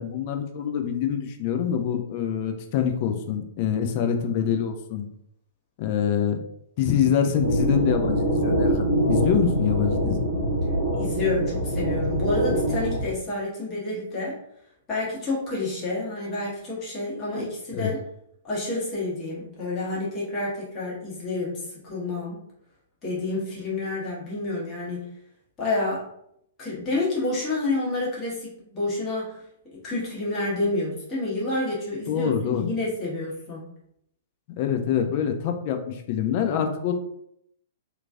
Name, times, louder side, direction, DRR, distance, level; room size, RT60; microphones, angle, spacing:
voice 1, 0.0-5.1 5.8-6.4 6.8-10.3 17.3-17.5 17.7-17.9 32.1-32.7 34.6-36.9, left 8 dB, 40° left, 6 dB, 0.4 m, -25 dB
sound 1, 7.4-13.1, right 1 dB, 85° right, 0.9 m, -24 dB
voice 2, 10.9-14.3 14.9-18.0 18.4-22.4 23.0-25.1 25.6-26.0 26.6-29.4 29.7-33.7, left 2 dB, 25° left, -7 dB, 1.3 m, -29 dB
2.9 x 2.6 x 2.4 m, 0.72 s
figure-of-eight pair, 110°, 0 cm